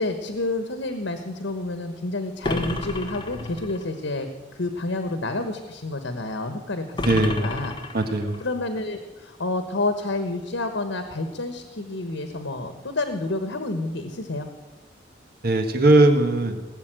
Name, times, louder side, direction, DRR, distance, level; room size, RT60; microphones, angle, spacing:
voice 1, 0.0-7.7 8.4-14.5, left 2 dB, 90° left, 8 dB, 1.3 m, -29 dB
sound 1, 2.4-3.9 7.0-8.5, left 2 dB, 25° left, 1.4 m, -30 dB
voice 2, 7.0-7.4 7.9-8.4 15.4-16.6, right 2 dB, 55° right, 6 dB, 1.6 m, -19 dB
18.5 x 7.2 x 9.1 m, 1.2 s
head